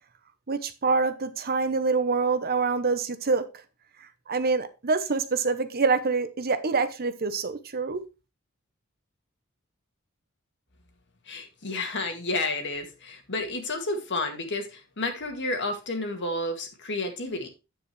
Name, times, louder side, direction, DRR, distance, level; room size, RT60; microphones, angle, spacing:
voice 1, 0.5-3.4 4.3-8.0, right 4 dB, 45° right, 0.8 m, -26 dB
voice 2, 11.3-17.5, left 2 dB, 55° left, 1.9 m, -31 dB
9.1 x 7.9 x 3.2 m
head